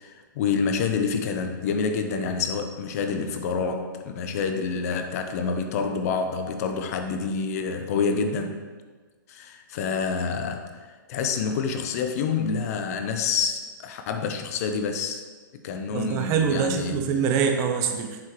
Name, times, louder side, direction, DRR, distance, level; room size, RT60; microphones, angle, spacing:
voice 1, 0.0-8.6 9.3-10.8 11.1-15.2 15.6-17.1, left 5 dB, 45° left, 6 dB, 0.7 m, -27 dB
voice 2, 15.9-18.2, right 6 dB, 30° right, 4 dB, 0.6 m, -24 dB
7.6 x 5.7 x 3.1 m, 1.4 s
hypercardioid pair, 145°, 11 cm